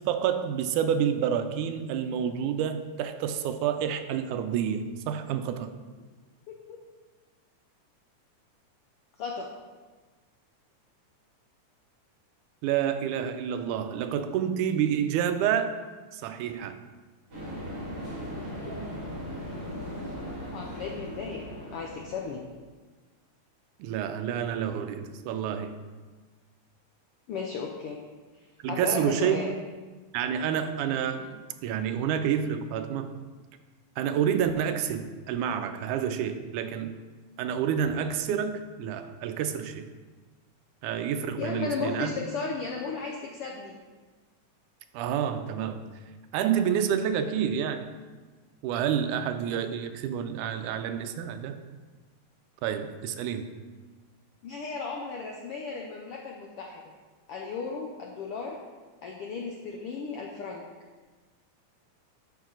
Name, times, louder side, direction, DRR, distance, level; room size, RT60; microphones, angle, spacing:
voice 1, 0.1-5.7 12.6-15.8 16.1-16.8 23.8-25.8 28.6-29.5 30.1-33.1 34.0-36.9 37.4-39.9 40.8-42.3 44.9-45.8 46.3-47.9 48.6-51.6 52.6-53.5, right 8 dB, 90° right, 9 dB, 2.1 m, -29 dB
voice 2, 9.2-9.5 18.4-18.7 20.4-22.4 27.3-28.0 28.7-29.5 41.4-43.8 54.4-56.8 57.3-58.6 59.0-60.6, left 4 dB, 80° left, 0 dB, 1.2 m, -35 dB
sound 1, 17.3-22.3, equal, 35° right, 3.4 m, -38 dB
11.0 x 5.6 x 3.9 m, 1.4 s
omnidirectional pair, 3.5 m